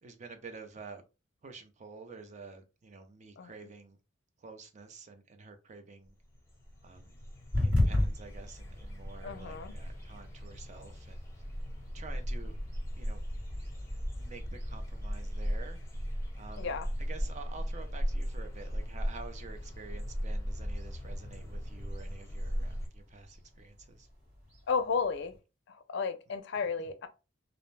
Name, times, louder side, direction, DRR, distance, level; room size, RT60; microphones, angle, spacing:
voice 1, 0.0-1.0 1.4-4.0 4.4-6.1 6.8-7.2 7.6-11.2 11.9-12.6 12.9-13.2 13.5-13.6 13.9-15.8 16.3-16.8 17.1-24.1, right 4 dB, 40° right, 0.5 m, -49 dB
sound 1, 6.1-6.2 6.3-22.9, equal, 15° left, 0.6 m, -38 dB
sound 2, 7.5-25.4, left 1 dB, 70° right, 1.6 m, -39 dB
voice 2, 9.2-9.7 16.6-16.9 24.7-25.3 25.7-27.1, left 5 dB, 65° left, 0.4 m, -33 dB
2.5 x 2.1 x 3.1 m
head